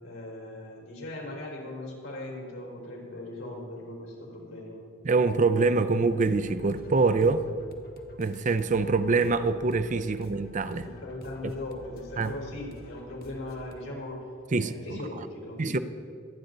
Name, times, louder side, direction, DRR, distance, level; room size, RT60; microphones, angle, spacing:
voice 1, 0.0-4.8 10.8-14.3 14.6-15.8, left 1 dB, 85° left, 4.4 m, -39 dB
voice 2, 5.0-7.4 8.2-10.8 11.4-11.5 12.2-12.3 14.5-15.0 15.6-15.8, right 3 dB, 40° right, 0.5 m, -25 dB
sound 1, 6.1-13.8, left 1 dB, 55° left, 1.3 m, -50 dB
24.5 x 9.2 x 4.0 m
head